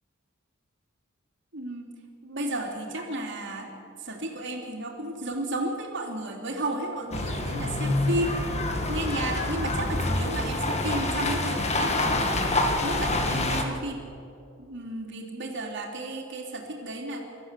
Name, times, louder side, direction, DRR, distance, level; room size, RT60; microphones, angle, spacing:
voice 1, 1.5-1.9 2.2-3.7 4.0-8.4 8.9-11.9 12.8-14.0 14.6-17.2, right 1 dB, 60° right, 1 dB, 3.5 m, -33 dB
sound 1, 7.1-13.6, left 2 dB, 35° left, 1.9 m, -27 dB
24.5 x 14.0 x 8.4 m, 2.5 s
head